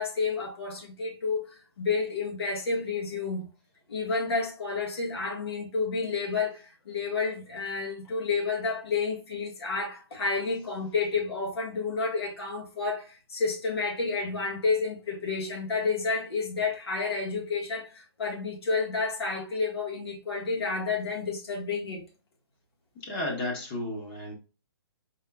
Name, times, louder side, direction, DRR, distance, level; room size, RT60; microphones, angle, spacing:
voice 1, 0.0-3.5 3.9-22.0, left 4 dB, 75° left, 1.6 m, -30 dB
voice 2, 22.9-24.3, left 1 dB, 25° left, 1.1 m, -33 dB
4.4 x 3.0 x 2.3 m
hypercardioid pair, 160°, 13 cm